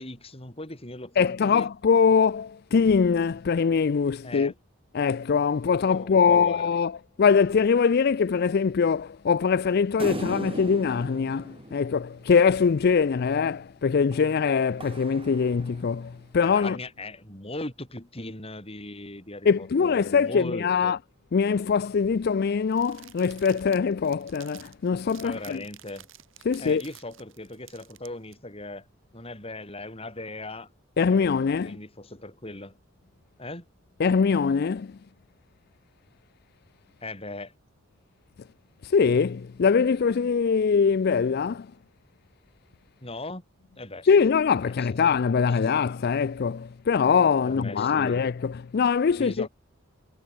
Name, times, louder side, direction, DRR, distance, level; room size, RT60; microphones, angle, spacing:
voice 1, 0.0-1.7 4.2-4.5 5.8-6.7 16.4-21.0 25.2-26.1 26.6-28.8 29.1-30.7 31.1-31.2 31.6-32.8 33.4-33.7 37.0-37.5 43.0-43.4 43.7-44.1 44.8-45.0 45.6-45.7 47.4-48.2 49.2-49.5, left 2 dB, 30° left, 5.2 m, -38 dB
voice 2, 1.2-4.5 4.9-16.8 19.4-21.0 21.3-25.6 26.5-26.8 31.0-31.8 34.0-35.0 38.8-41.7 44.0-49.5, left 5 dB, 50° left, 0.4 m, -23 dB
sound 1, 10.0-12.7 14.1-16.2, right 1 dB, 25° right, 2.5 m, -39 dB
sound 2, 22.7-28.3, right 12 dB, 70° right, 5.9 m, -51 dB
head